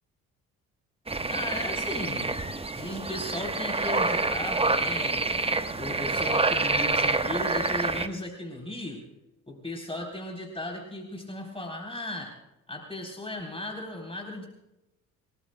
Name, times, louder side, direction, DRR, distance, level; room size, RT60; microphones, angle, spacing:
sound 1, 1.1-8.1, right 3 dB, 15° right, 1.1 m, -27 dB
voice 1, 1.3-2.3 2.7-5.5 5.7-9.0 9.5-12.3 12.7-14.5, left 1 dB, 15° left, 1 dB, 3.7 m, -36 dB
28.5 x 19.0 x 2.2 m, 0.94 s
figure-of-eight pair, 45°, 40 cm